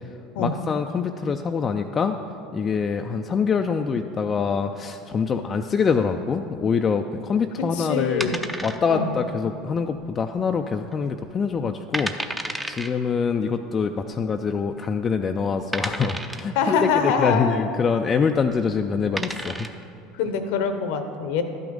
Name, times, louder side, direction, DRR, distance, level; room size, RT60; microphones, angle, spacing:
voice 1, 0.4-2.2 2.5-8.4 8.6-19.7, left 5 dB, 30° left, 5 dB, 0.4 m, -25 dB
voice 2, 7.7-8.4 8.9-9.2 16.5-17.7 20.1-21.4, left 5 dB, 65° left, 8 dB, 0.8 m, -24 dB
sound 1, 8.2-9.2 9.4-9.5 10.1-10.6 10.9-11.0 11.6-11.7 11.9-12.9 14.0-14.1 14.8-14.9 15.7-16.6 18.4-18.6 19.0-19.8, right 1 dB, 10° right, 0.6 m, -31 dB
12.0 x 6.0 x 5.3 m, 2.6 s
hypercardioid pair, 80°, 0 cm